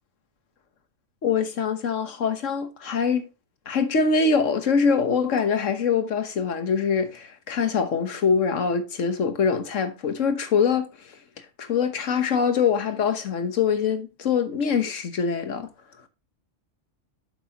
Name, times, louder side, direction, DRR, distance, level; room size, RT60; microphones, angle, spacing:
voice 1, 1.2-3.2 3.7-11.2 11.6-15.7, left 6 dB, 85° left, 1.5 m, -24 dB
9.1 x 6.9 x 2.9 m
omnidirectional pair, 1.3 m